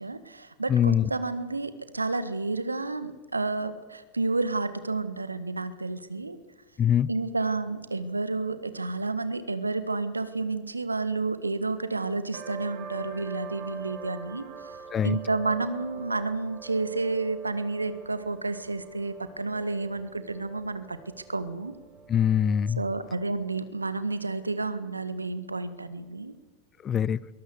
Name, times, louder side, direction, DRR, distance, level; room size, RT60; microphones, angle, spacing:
voice 1, 0.0-6.4 7.1-14.8 15.0-21.0 21.3-21.7 22.8-26.3, right 3 dB, 80° right, 13 dB, 1.6 m, -30 dB
voice 2, 0.7-1.0 6.8-7.1 14.9-15.2 22.1-22.8 26.8-27.2, left 9 dB, 25° left, 22 dB, 0.6 m, -23 dB
sound 1, 12.3-23.6, right 4 dB, 40° right, 3.4 m, -44 dB
22.5 x 19.5 x 8.1 m, 1.2 s
figure-of-eight pair, 90°, 0 cm